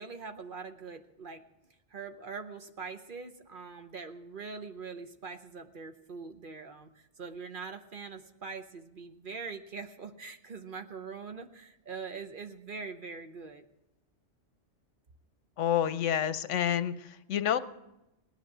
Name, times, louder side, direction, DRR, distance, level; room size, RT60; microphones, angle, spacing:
voice 1, 0.0-1.4 1.9-13.6, right 5 dB, 45° right, 7 dB, 1.0 m, -43 dB
voice 2, 15.6-17.6, left 10 dB, 75° left, 13 dB, 1.0 m, -29 dB
18.5 x 10.5 x 6.1 m, 0.91 s
omnidirectional pair, 1.3 m